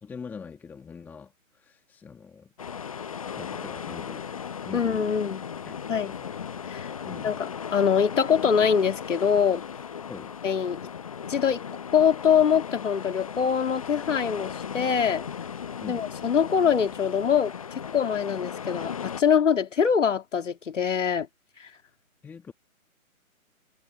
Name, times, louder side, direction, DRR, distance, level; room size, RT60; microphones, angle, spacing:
voice 1, 0.0-2.5 2.8-4.3 4.6-5.2 5.6-6.4 7.0-7.4 10.1-10.3 15.8-16.1 22.2-22.5, left 6 dB, 5° left, 1.7 m, -43 dB
sound 1, 2.6-19.2, left 7 dB, 25° left, 0.8 m, -37 dB
voice 2, 4.7-5.4 5.9-6.1 6.7-6.9 7.2-9.6 10.4-10.8 11.3-11.6 11.9-15.2 15.9-21.3 21.6-21.7, left 7 dB, 60° left, 2.3 m, -24 dB
figure-of-eight pair, 155°, 42 cm